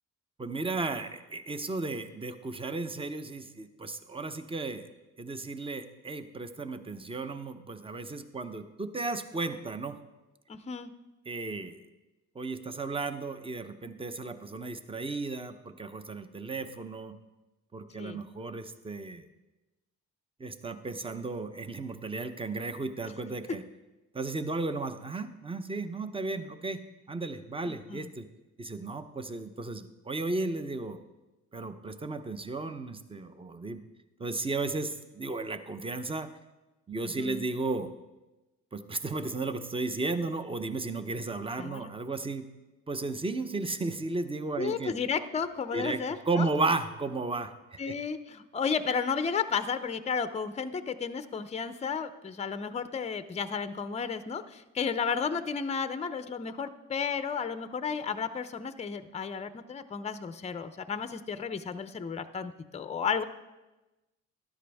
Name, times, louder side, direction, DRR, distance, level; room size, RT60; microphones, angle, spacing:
voice 1, 0.4-4.8 5.2-10.0 11.3-11.8 12.3-17.2 17.7-19.3 20.4-23.6 24.1-26.8 27.1-28.3 28.6-31.0 31.5-33.8 34.2-36.3 36.9-37.9 38.7-42.5 42.9-44.9 45.7-47.5 47.9-48.0, right 3 dB, 20° right, 10 dB, 0.8 m, -34 dB
voice 2, 10.5-10.9 18.0-18.2 27.7-28.1 37.0-37.4 41.6-41.9 44.6-46.5 47.8-63.2, left 6 dB, 20° left, 11 dB, 0.6 m, -33 dB
13.0 x 11.0 x 3.5 m, 1.1 s
cardioid pair, 90°, 30 cm